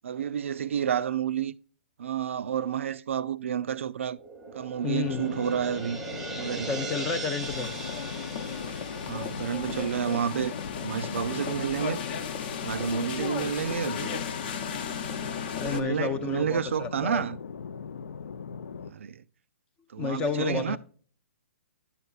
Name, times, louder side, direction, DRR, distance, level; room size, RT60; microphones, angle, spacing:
voice 1, 0.0-1.5 2.0-4.2 4.5-6.0 6.3-6.8 9.0-10.6 10.8-12.0 12.6-14.2 15.6-17.4 18.8-19.2 19.9-20.8, right 8 dB, 75° right, 0.4 m, -30 dB
sound 1, 4.1-10.6, right 3 dB, 5° right, 0.8 m, -40 dB
voice 2, 4.8-5.3 6.7-7.7 15.6-17.3 20.0-20.8, left 6 dB, 10° left, 0.4 m, -31 dB
sound 2, 5.0-18.9, left 6 dB, 90° left, 0.5 m, -40 dB
sound 3, 7.4-15.8, left 7 dB, 45° left, 0.7 m, -35 dB
9.8 x 6.7 x 2.4 m
hypercardioid pair, 165°, 7 cm